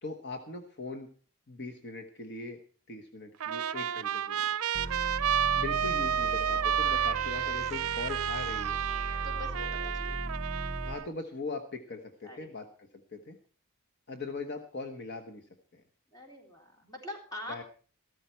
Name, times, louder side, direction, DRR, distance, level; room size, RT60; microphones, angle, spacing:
voice 1, 0.0-1.1 1.5-2.6 2.9-4.4 5.6-8.8 10.8-13.4 14.1-15.5 15.7-15.8 17.5-17.6, left 3 dB, 50° left, 5 dB, 1.2 m, -40 dB
Trumpet, 3.4-11.1, right 9 dB, 85° right, 0.5 m, -31 dB
sound 1, 4.7-10.9, right 1 dB, 30° right, 1.2 m, -38 dB
voice 2, 9.2-10.4 12.2-12.5 16.1-17.6, left 1 dB, 15° left, 0 dB, 3.8 m, -44 dB
14.0 x 13.0 x 4.4 m, 0.42 s
head